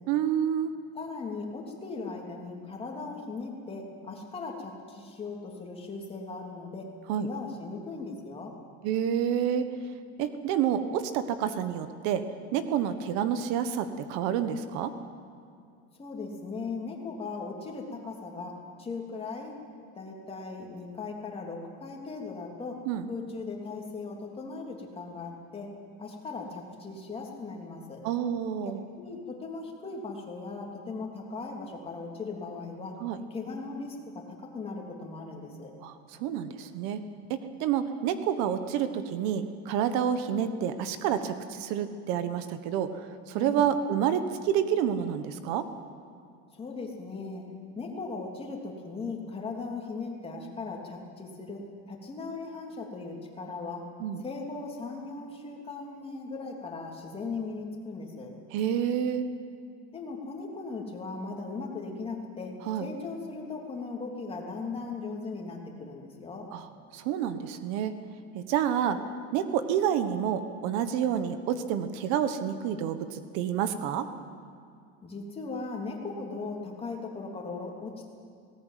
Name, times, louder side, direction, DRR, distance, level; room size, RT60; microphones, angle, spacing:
voice 1, 0.1-0.7 7.1-7.3 8.8-9.7 10.2-12.2 12.5-14.9 22.9-23.0 28.0-28.8 33.0-33.2 35.8-35.9 36.2-37.0 37.3-45.7 54.0-54.2 58.5-59.3 62.7-62.9 66.5-66.7 66.9-67.9 68.3-69.0 69.3-74.1, right 9 dB, 60° right, 10 dB, 1.4 m, -28 dB
voice 2, 0.9-6.9 7.2-8.5 16.0-19.5 19.9-22.8 23.1-25.7 26.0-28.0 29.0-32.9 33.3-35.7 43.3-43.7 46.5-47.4 47.7-53.9 54.2-58.3 59.9-62.5 62.8-66.5 75.0-78.1, left 3 dB, 20° left, 0 dB, 3.2 m, -38 dB
19.5 x 18.0 x 9.3 m, 2.4 s
cardioid pair, 155°, 32 cm